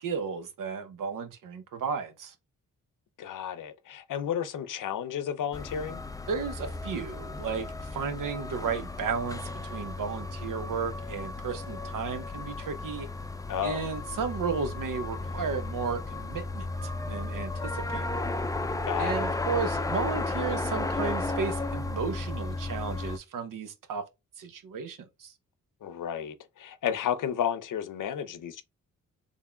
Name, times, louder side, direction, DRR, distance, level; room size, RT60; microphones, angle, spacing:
voice 1, 0.0-2.3 6.3-13.1 13.6-18.1 19.0-24.0 24.4-25.3, right 5 dB, 75° right, 0.9 m, -34 dB
voice 2, 3.2-6.0 13.5-13.9 18.8-19.2 25.8-28.6, left 9 dB, 70° left, 0.7 m, -32 dB
sound 1, 5.5-23.2, left 2 dB, 10° left, 0.4 m, -34 dB
3.6 x 3.5 x 2.2 m
cardioid pair, 55°, 33 cm